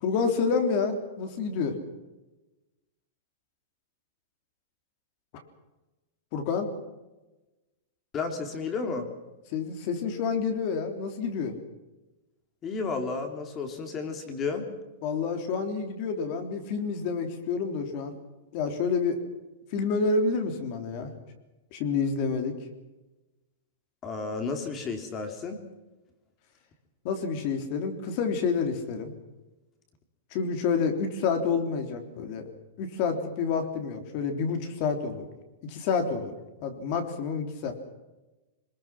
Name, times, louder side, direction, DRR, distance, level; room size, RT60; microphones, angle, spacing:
voice 1, 0.0-1.8 6.3-6.7 9.5-11.5 15.0-18.1 18.5-19.2 19.7-21.1 21.7-22.5 27.0-29.1 30.3-32.4 32.8-35.2 35.6-36.3 36.6-37.7, left 5 dB, 35° left, 6 dB, 3.3 m, -28 dB
voice 2, 8.1-9.0 12.6-14.7 24.0-25.6, left 4 dB, 20° left, 5 dB, 3.1 m, -32 dB
24.0 x 21.5 x 5.9 m, 1.1 s
supercardioid pair, 170°, 0 cm